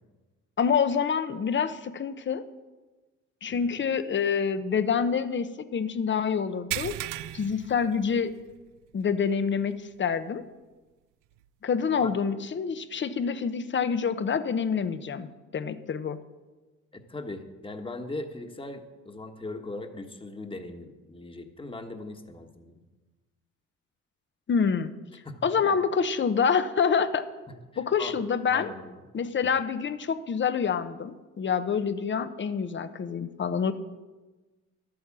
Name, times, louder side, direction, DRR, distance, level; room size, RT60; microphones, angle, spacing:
voice 1, 0.6-2.4 3.4-7.0 7.3-8.3 8.9-10.4 11.6-16.2 24.5-24.9 25.4-27.3 27.8-28.7 29.1-33.7, left 6 dB, 40° left, 12 dB, 0.9 m, -27 dB
sound 1, 6.7-8.6 8.9-9.1 9.6-9.7 11.4-11.5, right 16 dB, 85° right, 0.5 m, -36 dB
voice 2, 16.9-22.8 25.2-25.4 25.6-25.8 27.7-28.1 28.5-28.9 29.4-29.5, left 2 dB, 15° left, 5 dB, 1.4 m, -39 dB
12.0 x 8.7 x 7.4 m, 1.2 s
cardioid pair, 90°, 30 cm